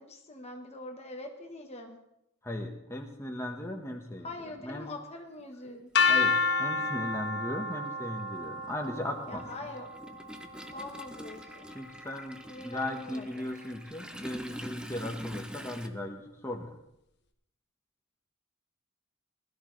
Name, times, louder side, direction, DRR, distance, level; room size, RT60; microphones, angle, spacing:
voice 1, 0.0-2.0 4.2-5.9 9.3-9.9 10.7-11.7 12.5-13.5, left 2 dB, 30° left, 3 dB, 1.3 m, -43 dB
voice 2, 2.4-4.3 4.6-4.9 6.1-9.4 11.7-16.7, left 1 dB, 15° left, 2 dB, 1.4 m, -37 dB
Toilet flush, 5.4-5.5 6.8-6.9 7.3-15.9, equal, 5° right, 0.7 m, -46 dB
sound 1, 6.0-11.9, left 4 dB, 60° left, 1.2 m, -31 dB
20.5 x 13.0 x 3.3 m, 0.82 s
head